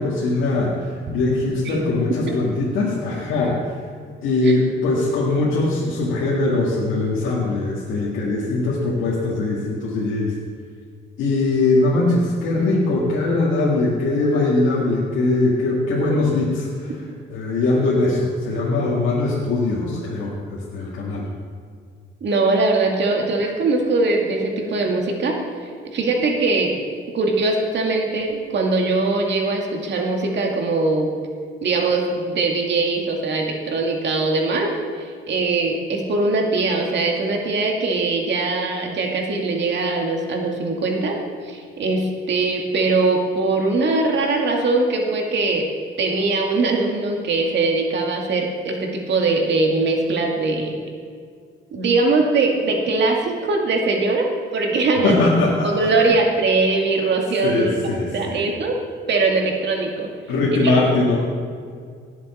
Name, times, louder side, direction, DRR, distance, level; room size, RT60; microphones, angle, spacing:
voice 1, 0.0-3.7 4.2-10.3 11.2-16.9 17.3-21.2 55.0-55.9 57.4-58.4 60.3-61.2, left 2 dB, 90° left, -6 dB, 2.0 m, -21 dB
voice 2, 22.2-25.4 25.8-26.8 27.1-31.1 31.6-45.7 46.0-50.8 51.7-55.3 55.6-57.7 58.1-58.8 59.1-60.1 60.6-60.8, right 3 dB, 60° right, 1 dB, 2.2 m, -21 dB
18.0 x 7.5 x 4.3 m, 2.1 s
cardioid pair, 90°, 20 cm